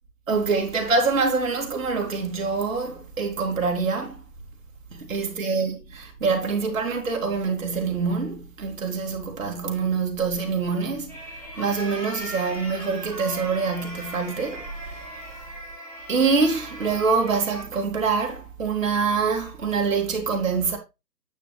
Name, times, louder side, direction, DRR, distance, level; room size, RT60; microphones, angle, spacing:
voice 1, 0.3-4.2 4.9-11.3 11.6-15.0 16.1-20.8, right 4 dB, 50° right, 2.6 m, -25 dB
sound 1, 11.1-17.6, equal, 5° left, 1.7 m, -39 dB
9.1 x 5.9 x 3.3 m
figure-of-eight pair, 160°, 49 cm